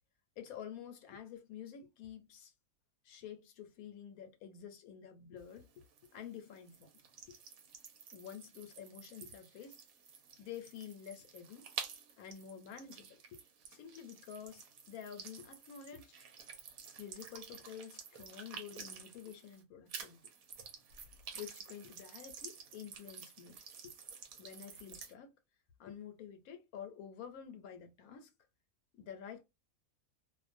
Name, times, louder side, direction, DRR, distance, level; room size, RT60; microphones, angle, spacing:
voice 1, 0.4-2.5 3.0-5.7 6.1-6.9 7.3-7.4 8.1-9.8 10.4-11.7 12.2-13.4 13.7-16.1 17.0-20.2 21.3-23.9 24.4-25.3 25.8-28.3 28.9-29.4, left 8 dB, 75° left, 1.1 m, -49 dB
sound 1, 5.4-19.6 19.9-25.1, right 6 dB, 75° right, 1.1 m, -51 dB
2.5 x 2.2 x 2.5 m
omnidirectional pair, 1.5 m